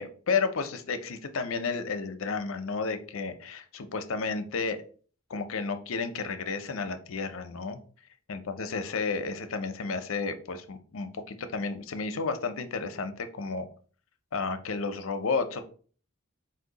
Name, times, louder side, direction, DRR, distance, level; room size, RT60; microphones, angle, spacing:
voice 1, 0.0-4.8 5.3-7.8 8.3-13.7 14.3-15.6, left 4 dB, 70° left, 9 dB, 0.6 m, -32 dB
4.3 x 2.7 x 3.9 m, 0.42 s
head